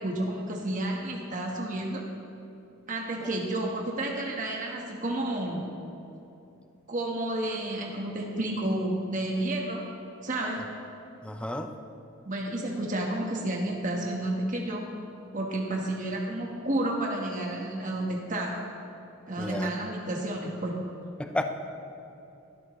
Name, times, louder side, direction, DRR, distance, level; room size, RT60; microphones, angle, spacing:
voice 1, 0.0-2.0 2.9-5.7 6.9-9.8 10.2-10.6 12.2-14.9 15.3-18.6 19.3-20.8, right 1 dB, 40° right, -1 dB, 1.3 m, -31 dB
voice 2, 11.2-11.7 19.4-19.7 21.2-21.4, left 1 dB, 5° left, 6 dB, 0.5 m, -31 dB
17.5 x 12.5 x 3.1 m, 2.9 s
head